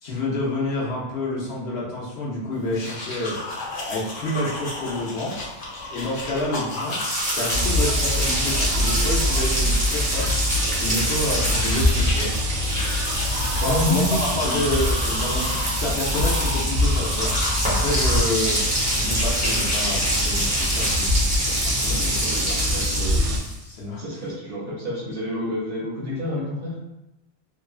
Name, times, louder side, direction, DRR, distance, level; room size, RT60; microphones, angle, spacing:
voice 1, 0.0-3.4 3.9-5.3 5.9-7.0 7.3-10.3 10.8-12.3 13.5-15.4 15.8-18.6 18.9-21.3 21.6-22.2 23.6-24.0, left 1 dB, 65° left, -4 dB, 0.9 m, -28 dB
sound 1, 2.6-21.0, left 2 dB, 85° left, 1.1 m, -33 dB
sound 2, 6.8-23.6, equal, 10° right, 0.7 m, -27 dB
sound 3, 7.5-23.4, equal, 90° right, 0.9 m, -25 dB
voice 2, 13.6-14.7 21.9-23.3 24.0-26.7, left 1 dB, 60° right, -6 dB, 0.7 m, -29 dB
3.0 x 2.1 x 2.3 m, 0.91 s
omnidirectional pair, 1.2 m